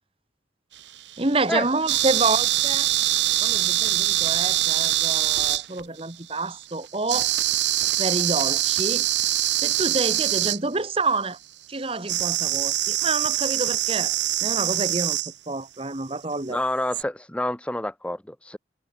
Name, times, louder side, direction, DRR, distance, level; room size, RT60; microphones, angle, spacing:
sound 1, 0.8-6.0 7.1-10.6 12.1-15.3 16.9-17.0, right 14 dB, 75° right, 1.6 m, -23 dB
voice 1, 1.2-2.9 3.4-7.3 8.0-9.1 9.6-11.4 11.7-14.2 14.4-15.2 15.5-16.6, right 3 dB, 30° right, 1.3 m, -28 dB
voice 2, 16.5-18.6, left 1 dB, 5° left, 0.5 m, -28 dB
head